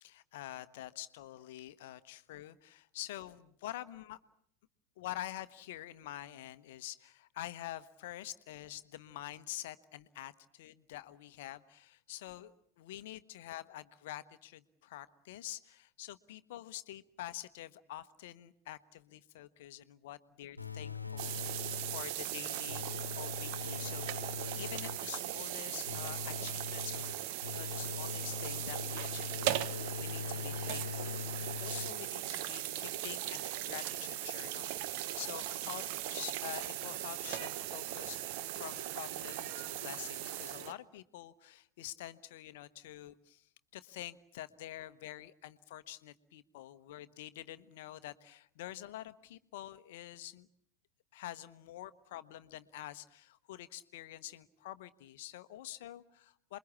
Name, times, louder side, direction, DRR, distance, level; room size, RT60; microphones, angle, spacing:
voice 1, 0.0-4.2 5.0-22.9 23.2-27.2 27.5-43.5 43.7-50.5 51.1-56.6, left 14 dB, 55° left, 13 dB, 1.1 m, -47 dB
sound 1, 20.6-22.2 22.7-25.2 25.9-32.3, left 6 dB, 85° left, 1.3 m, -42 dB
sound 2, 21.2-40.7, right 13 dB, 45° right, 1.1 m, -39 dB
28.0 x 22.0 x 8.6 m, 0.65 s
figure-of-eight pair, 90°, 0 cm